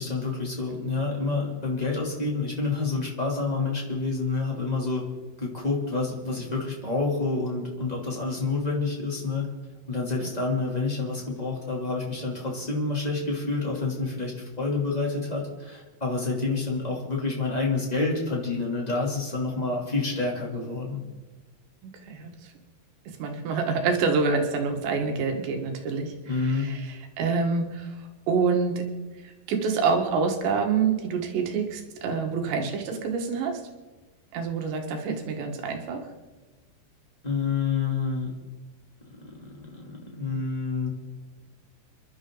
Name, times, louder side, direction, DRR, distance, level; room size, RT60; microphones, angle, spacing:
voice 1, 0.0-5.0 5.4-9.5 9.9-21.0 26.2-26.7 37.2-38.3 39.2-40.9, left 3 dB, 10° left, -2 dB, 2.5 m, -28 dB
voice 2, 21.8-22.5 23.2-26.1 26.4-28.0 28.3-28.8 29.2-33.6 34.3-36.0, right 5 dB, 85° right, 3 dB, 3.9 m, -27 dB
27.0 x 11.5 x 3.9 m, 1.2 s
omnidirectional pair, 4.9 m